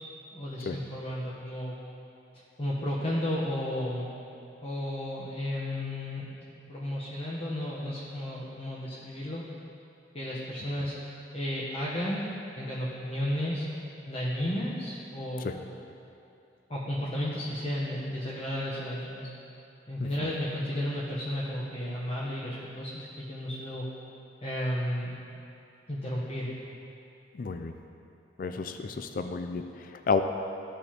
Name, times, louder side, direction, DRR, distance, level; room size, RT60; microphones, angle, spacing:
voice 1, 0.3-1.7 2.6-4.1 4.6-6.3 6.7-9.4 10.1-11.0 11.3-12.3 12.6-13.6 14.1-15.6 16.7-19.3 19.9-23.9 24.4-25.1 25.9-26.5, left 1 dB, 35° left, -8 dB, 1.0 m, -33 dB
voice 2, 27.3-27.7 28.4-30.2, left 4 dB, 50° left, 7 dB, 0.4 m, -31 dB
14.5 x 5.2 x 2.9 m, 2.7 s
head